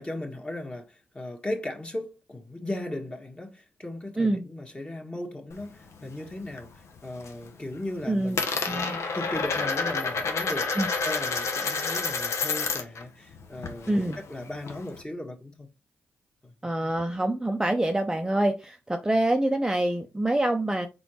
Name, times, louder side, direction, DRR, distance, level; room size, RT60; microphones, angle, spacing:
voice 1, 0.0-15.7 16.4-16.5, left 1 dB, 20° left, 1.6 m, -37 dB
Coin (dropping), 5.5-6.7 7.0-7.5 7.7-13.0 13.3-15.0, left 4 dB, 65° left, 0.9 m, -29 dB
voice 2, 8.1-8.4 8.7-9.0 10.7-10.9 13.9-14.2 16.6-20.9, right 1 dB, 10° right, 0.7 m, -26 dB
4.0 x 3.8 x 3.1 m
hypercardioid pair, 45°, 5 cm